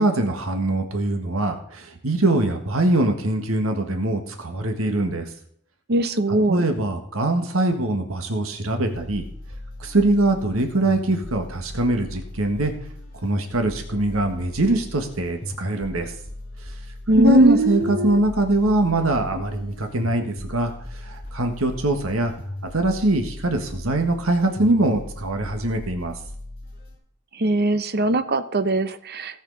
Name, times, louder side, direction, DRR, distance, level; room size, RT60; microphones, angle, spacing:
voice 1, 0.0-5.3 6.5-9.2 9.8-12.7 13.2-16.1 17.2-22.3 22.7-26.2, right 1 dB, 90° right, 5 dB, 1.6 m, -22 dB
voice 2, 5.9-6.6 17.1-18.2 27.3-29.4, right 2 dB, 50° right, 11 dB, 0.8 m, -21 dB
sound 1, 8.7-27.0, left 1 dB, 40° left, 6.2 m, -38 dB
18.0 x 7.3 x 4.0 m, 0.66 s
head